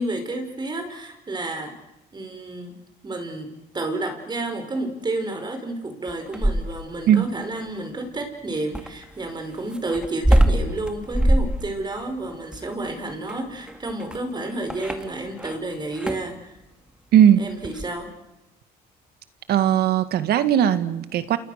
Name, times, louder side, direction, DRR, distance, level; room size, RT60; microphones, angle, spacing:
voice 1, 0.0-1.7 2.1-2.8 3.0-16.6 17.4-18.1, right 2 dB, 25° right, 7 dB, 5.3 m, -30 dB
sound 1, 6.1-7.0 8.7-15.6 15.9-16.3 17.6-17.9, right 1 dB, 5° right, 2.1 m, -23 dB
voice 2, 19.5-21.4, right 10 dB, 70° right, 12 dB, 1.9 m, -18 dB
29.0 x 28.5 x 6.7 m, 0.95 s
cardioid pair, 110°, 17 cm